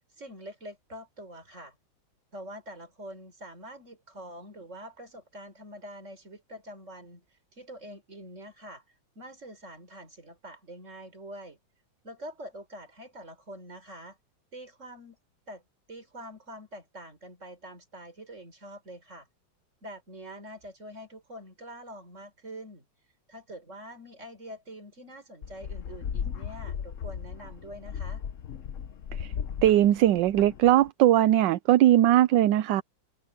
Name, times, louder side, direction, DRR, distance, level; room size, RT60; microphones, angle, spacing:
voice 1, 0.2-1.8 2.3-7.2 7.5-8.8 9.1-11.6 12.0-14.2 14.5-15.2 15.5-15.6 15.9-19.3 19.8-22.9 23.3-28.2, right 1 dB, 35° right, 5.0 m, -45 dB
sound 1, 25.4-30.9, left 7 dB, 55° left, 0.9 m, -36 dB
voice 2, 29.6-32.8, right 13 dB, 75° right, 1.2 m, -20 dB
omnidirectional pair, 2.1 m